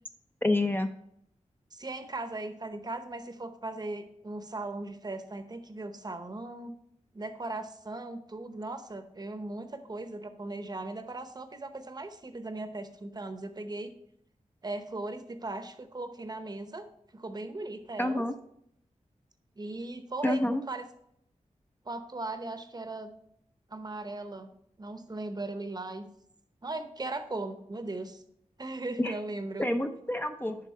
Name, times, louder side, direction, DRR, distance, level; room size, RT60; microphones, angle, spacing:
voice 1, 0.4-0.9 18.0-18.3 20.2-20.6 29.0-29.2 29.6-30.6, left 1 dB, 15° left, 6 dB, 0.5 m, -28 dB
voice 2, 1.7-6.7 7.1-13.9 14.6-16.9 17.1-18.2 19.6-20.4 20.7-20.8 21.9-23.1 23.7-24.5 24.8-26.1 26.6-28.2 28.6-29.7 30.5-30.6, right 2 dB, 30° right, 8 dB, 0.8 m, -38 dB
10.0 x 3.7 x 4.3 m, 0.73 s
wide cardioid pair, 90°, 13 cm